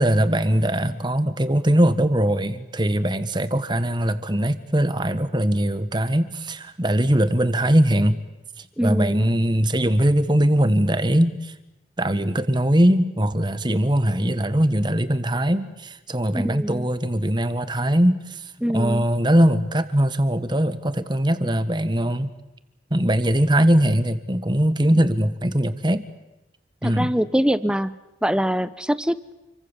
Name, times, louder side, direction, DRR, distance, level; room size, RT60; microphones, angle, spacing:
voice 1, 0.0-8.2 8.8-11.5 12.0-18.4 18.7-22.3 22.9-26.0 26.8-27.1, right 1 dB, 25° right, 12 dB, 1.6 m, -21 dB
voice 2, 8.8-9.3 16.3-16.9 18.6-19.0 26.8-29.3, equal, 5° right, 14 dB, 0.9 m, -24 dB
29.5 x 24.0 x 7.4 m, 1.0 s
head